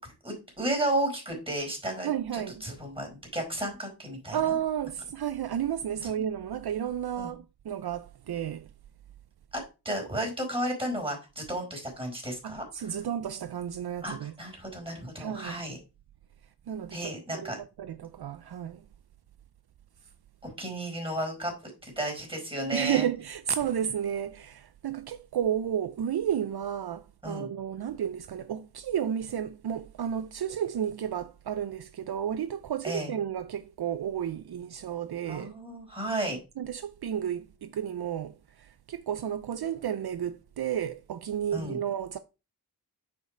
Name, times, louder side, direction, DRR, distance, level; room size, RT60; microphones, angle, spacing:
voice 1, 0.2-4.4 7.2-7.3 9.5-13.0 14.0-15.8 16.9-17.6 20.4-23.1 27.2-27.5 32.8-33.1 35.2-36.4 41.5-41.8, right 1 dB, 15° right, 4.6 m, -33 dB
voice 2, 2.0-2.6 4.3-8.7 12.4-14.3 15.2-15.6 16.7-17.5 17.8-18.8 22.7-35.6 36.6-42.2, right 9 dB, 70° right, 0.5 m, -32 dB
6.7 x 5.1 x 5.0 m
wide cardioid pair, 70°, 40 cm